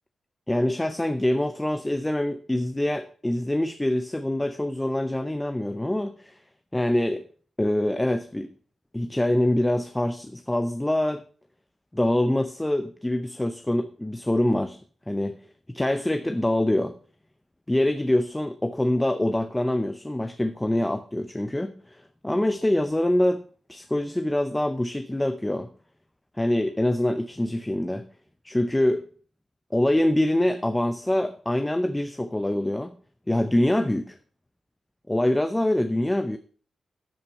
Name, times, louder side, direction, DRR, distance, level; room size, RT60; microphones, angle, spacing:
voice 1, 0.5-6.4 6.7-7.2 7.6-8.5 8.9-11.2 11.9-14.8 15.1-15.4 15.7-16.9 17.7-23.4 23.7-25.7 26.4-28.1 28.4-29.1 29.7-32.9 33.3-34.2 35.1-36.4, left 1 dB, 10° left, 0.6 m, -25 dB
13.0 x 5.6 x 4.4 m
wide cardioid pair, 105°, 0 cm